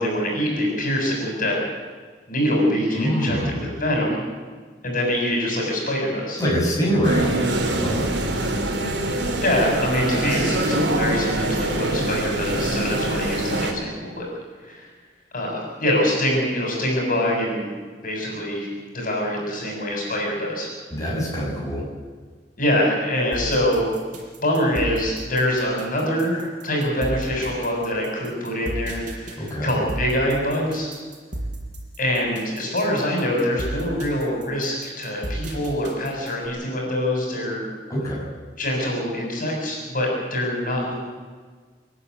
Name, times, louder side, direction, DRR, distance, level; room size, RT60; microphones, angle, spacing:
voice 1, 0.0-1.6 2.3-4.2 4.8-6.4 9.4-14.3 14.6-14.9 15.3-17.7 18.0-18.7 18.9-20.7 22.6-23.9 24.4-30.9 32.0-37.7 38.6-40.9, equal, 50° left, -1 dB, 7.1 m, -24 dB
voice 2, 2.9-3.6 6.4-8.2 20.9-21.9 29.4-29.7 37.9-38.2, equal, 20° left, -5 dB, 6.7 m, -24 dB
sound 1, 7.0-13.7, right 1 dB, 85° right, 3.4 m, -24 dB
sound 2, 23.3-36.5, right 1 dB, 45° right, 5.9 m, -33 dB
27.5 x 11.0 x 9.7 m, 1.5 s
head